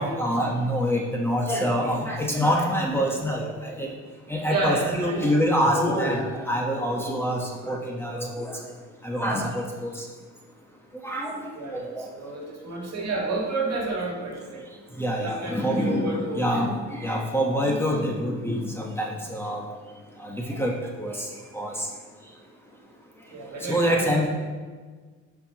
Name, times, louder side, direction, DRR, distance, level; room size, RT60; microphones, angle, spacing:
voice 1, 0.0-3.9 4.3-8.5 9.0-9.9 11.0-11.3 11.7-12.1 15.0-19.6 20.2-20.7 21.0-21.2 21.5-21.7 23.7-24.3, equal, 10° left, -1 dB, 1.0 m, -26 dB
voice 2, 4.5-5.4 11.5-14.7 15.2-16.5 23.3-24.2, right 2 dB, 60° right, -1 dB, 1.8 m, -30 dB
11.0 x 4.7 x 2.9 m, 1.5 s
cardioid pair, 90°, 30 cm